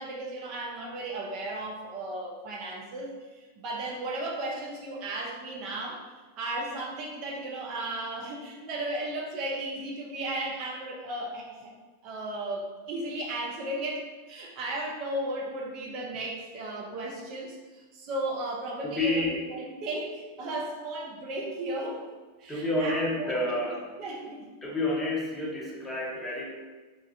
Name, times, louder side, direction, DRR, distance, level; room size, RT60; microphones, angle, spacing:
voice 1, 0.0-6.0 6.4-11.7 12.0-22.0 22.4-24.5, right 1 dB, 40° right, -2 dB, 0.5 m, -35 dB
voice 2, 18.8-19.5 22.5-23.9 24.6-26.5, left 2 dB, 10° left, -3 dB, 0.7 m, -29 dB
3.1 x 2.3 x 2.6 m, 1.3 s
figure-of-eight pair, 90°, 0 cm